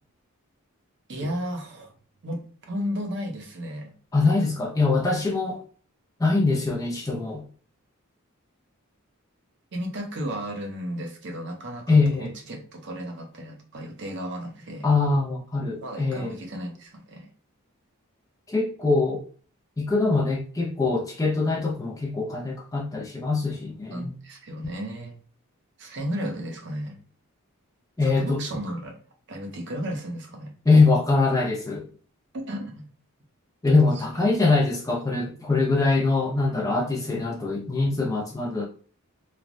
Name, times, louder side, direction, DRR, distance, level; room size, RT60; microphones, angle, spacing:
voice 1, 1.1-1.9 2.2-3.9 4.2-4.4 9.7-14.9 15.8-17.3 23.9-25.1 25.8-27.0 28.0-28.9 29.3-30.5 32.5-32.9 34.0-34.3, equal, 50° right, 0.6 m, -34 dB
voice 2, 4.1-5.6 6.2-7.4 11.9-12.3 14.8-16.4 18.5-19.2 19.8-24.1 28.0-28.4 30.7-31.8 33.6-38.7, left 3 dB, 15° left, 0.3 m, -23 dB
3.2 x 2.1 x 2.5 m
head